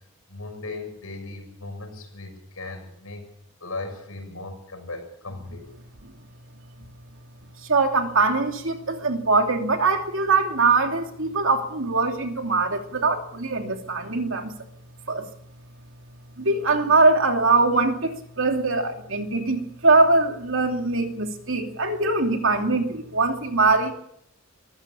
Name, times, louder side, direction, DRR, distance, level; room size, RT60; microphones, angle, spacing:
voice 1, 0.3-3.2 3.6-5.6, left 2 dB, 80° left, 4 dB, 6.8 m, -37 dB
voice 2, 7.7-14.5 15.1-15.3 16.4-23.9, right 3 dB, 65° right, 5 dB, 2.8 m, -22 dB
23.5 x 15.5 x 7.2 m, 0.73 s
head